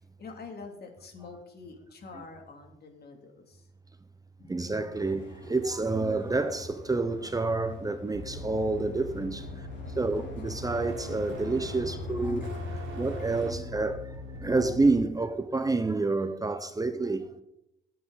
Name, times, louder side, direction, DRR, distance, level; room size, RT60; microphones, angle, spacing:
voice 1, 0.2-3.7 4.4-4.6 9.4-9.7 10.2-10.3 14.3-14.5, left 4 dB, 55° left, 2.8 m, -47 dB
voice 2, 4.5-9.4 10.0-17.3, right 3 dB, 20° right, 0.8 m, -29 dB
sound 1, 4.9-13.5, left 2 dB, 70° left, 4.2 m, -42 dB
sound 2, 8.1-15.0, left 1 dB, 80° right, 2.2 m, -42 dB
16.0 x 8.6 x 4.0 m
cardioid pair, 90°, 20 cm